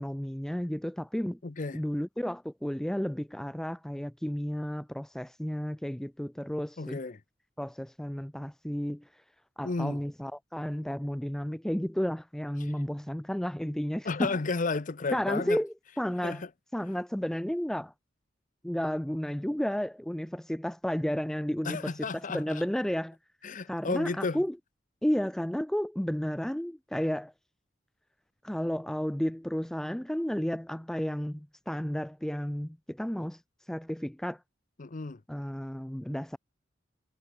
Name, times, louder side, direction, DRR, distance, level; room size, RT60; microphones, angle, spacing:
voice 1, 0.0-1.4 1.7-7.0 7.6-9.0 9.6-14.3 15.1-16.4 16.7-17.9 18.6-23.2 23.7-24.6 25.0-27.3 28.4-33.4 33.7-34.4 35.3-36.4, equal, 5° left, 0.3 m, -32 dB
voice 2, 1.4-1.8 6.8-7.2 9.6-10.0 12.6-12.7 14.0-15.6 16.2-16.5 21.6-22.6 23.4-24.4 34.8-35.2, left 3 dB, 45° left, 0.7 m, -33 dB
head